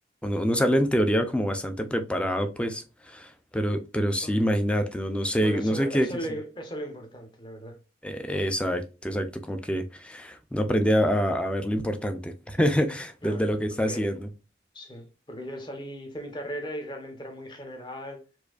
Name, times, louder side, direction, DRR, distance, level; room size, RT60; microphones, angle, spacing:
voice 1, 0.2-6.1 8.0-14.3, equal, 5° left, 0.4 m, -26 dB
voice 2, 5.4-7.8 13.2-13.5 13.9-14.1 14.7-18.2, equal, 25° left, 0.8 m, -37 dB
4.4 x 2.6 x 2.4 m
head